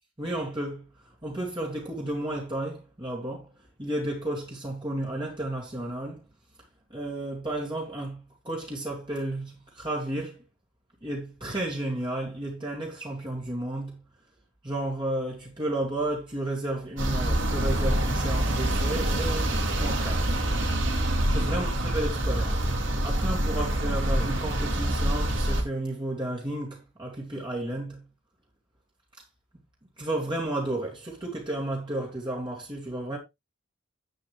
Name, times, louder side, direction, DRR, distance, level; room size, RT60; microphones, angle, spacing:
voice 1, 0.2-3.5 3.8-6.2 6.9-10.4 11.0-14.0 14.6-20.3 21.1-28.0 30.0-33.2, right 1 dB, 25° right, 2.4 m, -32 dB
sound 1, 17.0-25.6, right 1 dB, 65° right, 3.6 m, -26 dB
10.5 x 8.4 x 3.2 m
head